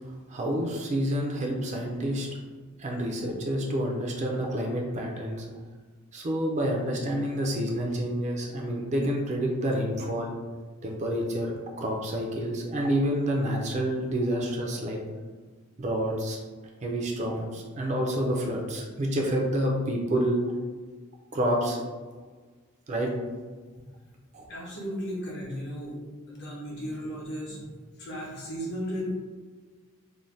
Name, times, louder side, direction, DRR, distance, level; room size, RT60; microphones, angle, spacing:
voice 1, 0.3-2.3 2.8-5.5 6.1-10.3 10.8-15.0 15.8-16.4 16.8-20.4 21.3-21.8 22.9-23.1 24.3-24.4, equal, 30° right, 0 dB, 0.3 m, -28 dB
voice 2, 24.5-26.0 26.3-27.6 28.0-29.2, equal, 50° left, -4 dB, 0.8 m, -35 dB
2.6 x 2.1 x 3.1 m, 1.4 s
head